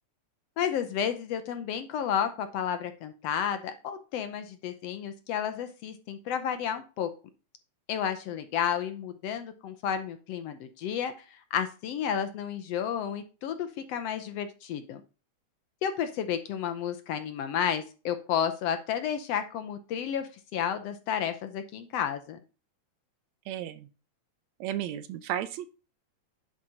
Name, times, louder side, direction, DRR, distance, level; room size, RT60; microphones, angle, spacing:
voice 1, 0.6-7.1 7.9-11.1 11.5-15.0 15.8-22.4, left 8 dB, 70° left, 9 dB, 1.7 m, -31 dB
voice 2, 23.5-23.9 24.6-25.7, right 11 dB, 75° right, 13 dB, 1.9 m, -33 dB
10.5 x 4.3 x 4.9 m, 0.33 s
omnidirectional pair, 3.3 m